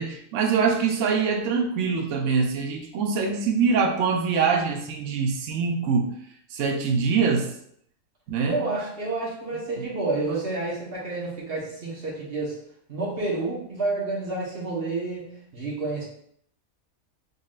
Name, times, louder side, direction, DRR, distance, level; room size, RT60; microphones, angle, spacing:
voice 1, 0.0-6.2 6.5-7.5 8.3-8.6 9.8-9.9, right 5 dB, 70° right, 3 dB, 0.9 m, -24 dB
voice 2, 8.4-12.6 12.9-16.1, right 3 dB, 45° right, -4 dB, 1.4 m, -29 dB
3.9 x 3.6 x 2.4 m, 0.67 s
omnidirectional pair, 1.5 m